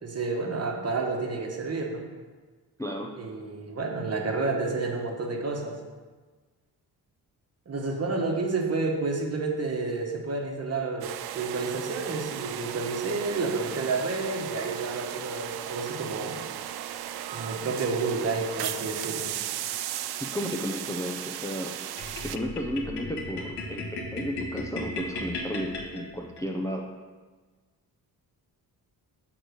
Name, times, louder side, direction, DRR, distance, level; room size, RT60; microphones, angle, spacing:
voice 1, 0.0-2.1 3.2-5.8 7.7-16.4 17.3-19.4, right 3 dB, 40° right, 1 dB, 1.2 m, -30 dB
voice 2, 2.8-3.1 20.2-21.7 22.2-26.9, equal, 10° left, 0 dB, 0.5 m, -33 dB
sound 1, 11.0-22.4, right 11 dB, 75° right, 0.5 m, -36 dB
sound 2, 22.0-26.4, left 2 dB, 85° left, 1.5 m, -36 dB
6.5 x 3.9 x 6.3 m, 1.4 s
cardioid pair, 120°, 39 cm